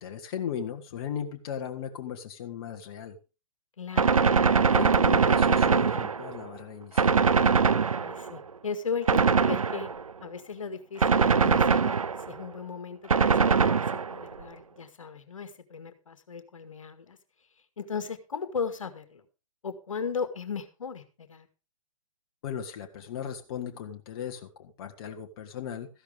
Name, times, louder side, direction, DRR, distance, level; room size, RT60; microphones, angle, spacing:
voice 1, 0.0-3.2 4.7-7.2 22.4-25.9, left 8 dB, 45° left, 4 dB, 1.5 m, -37 dB
voice 2, 3.8-4.3 8.0-9.9 10.2-12.0 12.3-17.2 17.8-19.2 19.6-21.5, left 5 dB, 70° left, 10 dB, 1.9 m, -36 dB
Gunshot gunfire, 4.0-6.5 7.0-8.4 9.1-10.1 11.0-12.4 13.1-14.3, right 5 dB, 80° right, 0.7 m, -22 dB
14.0 x 11.5 x 3.5 m, 0.32 s
figure-of-eight pair, 120°, 17 cm